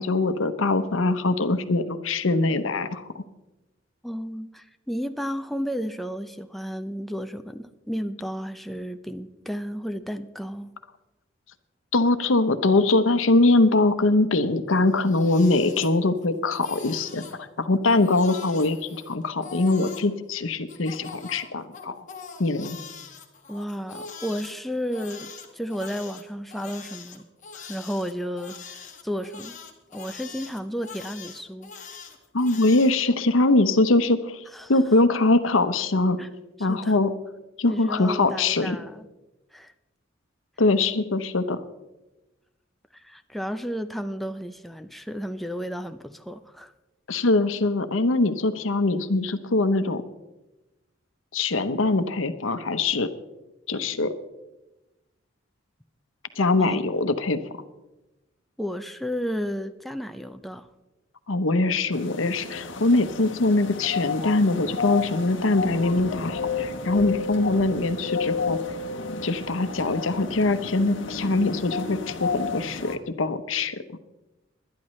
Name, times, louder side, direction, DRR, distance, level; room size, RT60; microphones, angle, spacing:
voice 1, 0.0-3.2 11.9-18.8 19.1-22.0 22.4-22.8 32.3-34.4 34.7-36.2 36.6-37.1 37.6-38.8 40.6-41.6 47.1-50.0 51.3-53.1 53.7-54.1 56.4-57.6 61.3-68.6 69.2-73.8, left 2 dB, 90° left, 11 dB, 0.9 m, -22 dB
voice 2, 4.0-10.7 23.5-27.3 27.5-29.6 29.9-31.7 34.5-34.7 36.2-36.3 36.6-37.0 37.7-39.1 39.5-39.7 42.9-46.7 56.6-56.8 58.6-60.7, equal, ahead, 8 dB, 0.5 m, -33 dB
Crying sobbing, 14.8-16.3 16.5-17.4 17.8-20.1 20.7-24.5 24.9-32.9, left 6 dB, 40° left, 1.6 m, -43 dB
sound 1, 61.9-73.0, left 5 dB, 70° left, 1.1 m, -32 dB
20.5 x 11.5 x 3.2 m, 1.0 s
head